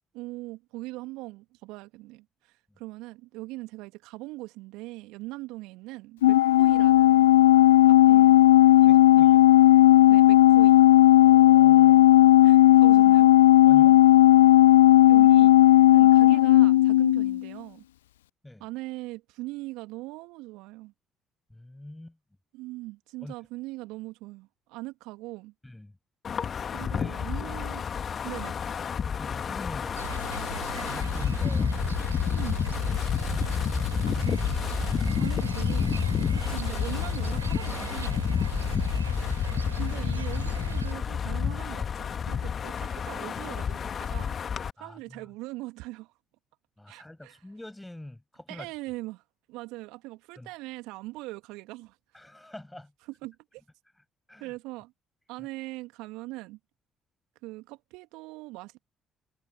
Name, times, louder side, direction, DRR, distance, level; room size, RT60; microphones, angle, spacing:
voice 1, 0.1-7.3 7.8-8.4 8.8-9.3 10.1-10.9 12.4-13.3 15.1-15.5 15.9-17.8 18.6-20.9 22.5-25.5 26.7-27.8 28.2-28.6 32.2-32.6 34.1-34.4 35.2-38.8 39.8-44.4 44.8-46.1 46.9-47.4 48.5-52.0 53.2-53.6 54.4-54.9 55.3-56.6 57.4-58.8, right 21 dB, 70° right, 1.7 m, -41 dB
Organ, 6.2-17.5, left 15 dB, 80° left, 0.3 m, -16 dB
voice 2, 8.8-9.5 11.2-12.1 13.7-14.1 18.4-18.7 21.5-22.2 23.2-23.3 25.6-26.0 26.8-27.5 29.1-30.6 30.9-31.7 32.7-33.3 39.0-39.4 44.8-45.3 46.8-48.7 50.4-50.5 52.1-52.9 54.3-54.5 55.4-55.5, left 1 dB, 10° left, 7.1 m, -45 dB
Wind, 26.2-44.7, left 7 dB, 45° left, 2.2 m, -29 dB
sound 1, 30.0-40.9, right 6 dB, 90° right, 3.9 m, -39 dB
figure-of-eight pair, 45°, 0 cm